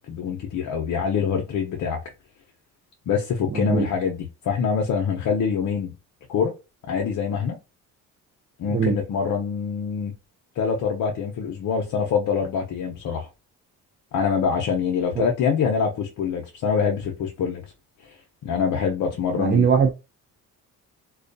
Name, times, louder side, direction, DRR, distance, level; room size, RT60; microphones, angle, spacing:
voice 1, 0.1-2.0 3.1-5.9 6.3-6.5 6.8-7.6 8.6-10.1 10.6-13.3 14.1-17.6 18.0-18.2 18.4-19.7, left 6 dB, 60° left, 0.7 m, -25 dB
voice 2, 3.5-3.9 8.7-9.0 15.2-15.3 19.3-19.9, right 7 dB, 30° right, 0.5 m, -21 dB
2.2 x 2.2 x 2.6 m
cardioid pair, 85°, 36 cm